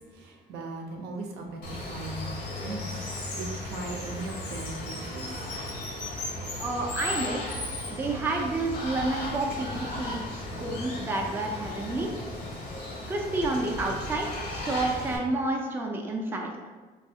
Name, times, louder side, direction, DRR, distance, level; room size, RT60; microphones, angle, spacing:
voice 1, 0.1-5.3, right 3 dB, 75° right, 2 dB, 0.6 m, -39 dB
Water, 1.6-15.2, left 2 dB, 85° left, 0.8 m, -36 dB
voice 2, 6.6-7.5 7.9-10.2 10.6-12.1 13.1-16.5, right 2 dB, 15° right, 0 dB, 0.4 m, -30 dB
3.3 x 2.3 x 2.7 m, 1.4 s
cardioid pair, 110°, 17 cm